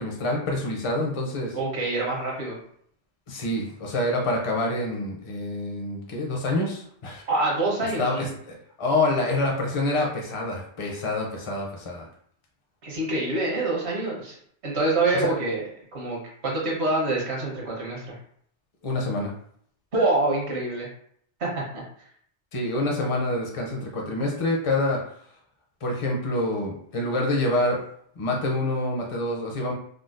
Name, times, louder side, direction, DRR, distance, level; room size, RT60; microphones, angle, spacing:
voice 1, 0.0-1.6 3.3-7.2 8.0-12.0 15.1-15.3 18.8-19.3 22.5-25.0 25.8-27.8 28.2-29.7, left 2 dB, 40° left, -1 dB, 0.5 m, -27 dB
voice 2, 1.5-2.6 7.3-8.3 12.8-14.4 14.6-15.6 15.9-16.2 16.4-18.2 19.9-20.9 21.4-21.6, right 2 dB, 70° right, -3 dB, 1.3 m, -26 dB
3.7 x 2.2 x 2.5 m, 0.64 s
omnidirectional pair, 1.2 m